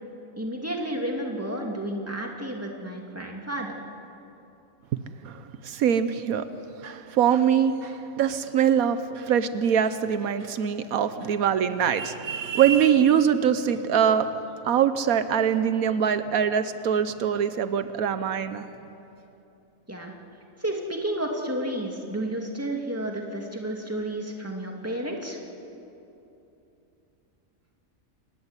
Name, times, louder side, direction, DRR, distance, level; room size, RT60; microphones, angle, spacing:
voice 1, 0.4-3.7 19.9-20.1 20.6-25.4, right 1 dB, 10° right, 1 dB, 2.6 m, -31 dB
voice 2, 5.2-6.5 6.8-14.4 14.6-18.6, right 8 dB, 80° right, 11 dB, 1.3 m, -23 dB
27.0 x 15.5 x 9.8 m, 2.9 s
omnidirectional pair, 1.5 m